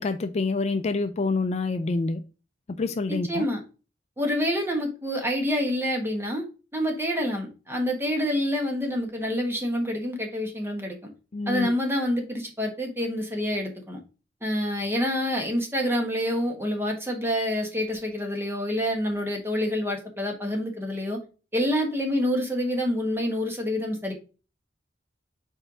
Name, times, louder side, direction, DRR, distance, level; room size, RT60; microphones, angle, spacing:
voice 1, 0.0-2.2 2.8-3.5 11.3-11.7, left 3 dB, 35° left, 0.4 m, -27 dB
voice 2, 3.1-3.6 4.2-6.4 6.7-11.1 11.5-14.0 14.4-21.2 21.5-24.1, equal, 15° right, 1.3 m, -27 dB
4.5 x 4.4 x 4.7 m
head